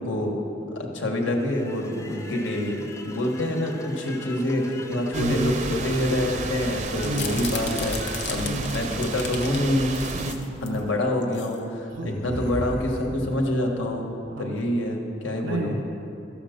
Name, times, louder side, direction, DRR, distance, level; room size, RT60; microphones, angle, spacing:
voice 1, 0.0-9.9 10.6-14.1 14.4-15.8, left 1 dB, 90° left, 1 dB, 1.4 m, -26 dB
sound 1, 1.2-9.3, left 2 dB, 15° left, 0.5 m, -41 dB
sound 2, 5.1-10.3, right 3 dB, 40° right, 0.6 m, -32 dB
voice 2, 5.1-5.8 7.0-7.6 8.4-8.8 10.1-10.9 11.9-12.2 14.3-14.8 15.4-15.9, right 1 dB, 80° right, 2 dB, 0.6 m, -32 dB
sound 3, 6.9-9.6 9.9-10.8 11.2-11.5 11.9-13.5, left 3 dB, 60° left, 0.9 m, -35 dB
12.5 x 7.0 x 5.1 m, 3.0 s
head